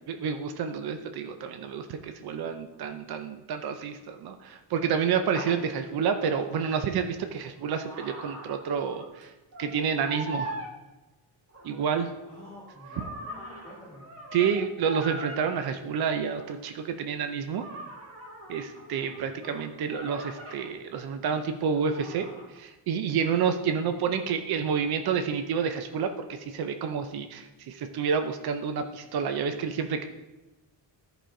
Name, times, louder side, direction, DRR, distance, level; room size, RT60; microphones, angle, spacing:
voice 1, 0.1-9.3 9.6-10.5 11.6-12.1 14.3-17.6 18.5-22.3 22.5-30.0, right 6 dB, 55° right, 7 dB, 0.6 m, -29 dB
sound 1, 5.3-5.6 7.2-9.2 9.5-9.8 10.0-10.7 11.5-15.6 16.4-16.6 17.6-20.7 21.7-22.6, right 1 dB, 30° right, 1.3 m, -41 dB
voice 2, 12.3-14.0 19.0-19.4 23.8-24.2, left 1 dB, 5° left, -7 dB, 2.5 m, -49 dB
13.5 x 5.0 x 3.8 m, 1.1 s
wide cardioid pair, 180°, 45 cm